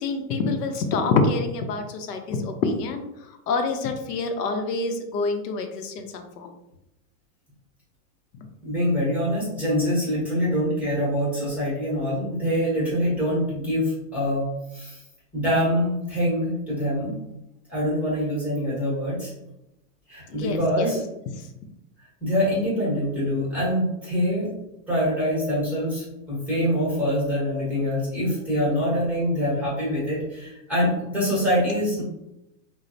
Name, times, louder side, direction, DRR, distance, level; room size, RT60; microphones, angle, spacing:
voice 1, 0.0-6.6 8.3-8.5 20.3-20.9 21.4-21.5, left 3 dB, 85° left, 5 dB, 0.6 m, -27 dB
voice 2, 8.6-15.0 15.3-17.1 17.7-19.3 20.1-21.0 22.2-24.5 24.9-32.0, equal, 5° right, -8 dB, 0.8 m, -25 dB
3.0 x 2.0 x 2.6 m, 0.88 s
supercardioid pair, 150°, 47 cm